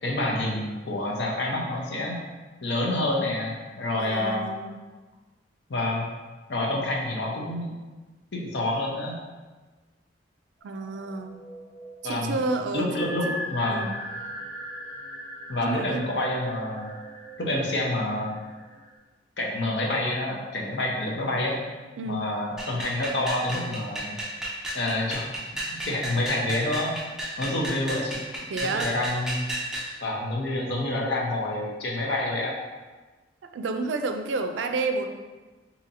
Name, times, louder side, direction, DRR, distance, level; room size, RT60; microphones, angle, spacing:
voice 1, 0.0-2.2 2.6-4.4 5.7-6.0 6.5-7.7 8.3-9.2 12.0-12.4 12.7-13.9 15.5-16.9 17.4-18.4 19.4-21.6 22.0-24.2 24.7-25.3 25.7-27.0 27.4-28.2 28.6-29.4 30.0-32.5, left 1 dB, 75° left, -1 dB, 0.7 m, -28 dB
voice 2, 4.0-4.8 10.6-11.4 12.0-13.4 13.7-14.0 15.6-16.1 22.0-22.3 28.5-28.9 33.5-35.1, right 3 dB, 90° right, 6 dB, 0.4 m, -30 dB
sound 1, 10.6-18.9, equal, 35° left, 0.8 m, -40 dB
sound 2, 22.6-29.9, equal, 5° right, 0.5 m, -34 dB
4.0 x 2.8 x 2.7 m, 1.3 s
head